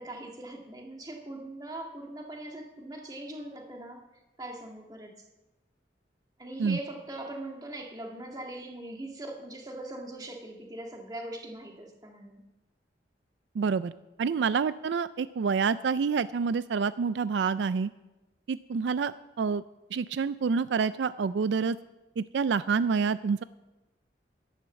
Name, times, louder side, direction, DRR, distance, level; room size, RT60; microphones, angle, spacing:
voice 1, 0.0-4.0 4.4-5.1 6.4-12.4, right 1 dB, 20° right, 1 dB, 1.8 m, -41 dB
voice 2, 13.6-13.9 14.2-17.9 18.5-19.6 19.9-21.8 22.2-23.4, right 5 dB, 75° right, 15 dB, 0.4 m, -27 dB
11.0 x 11.0 x 7.1 m, 1.0 s
head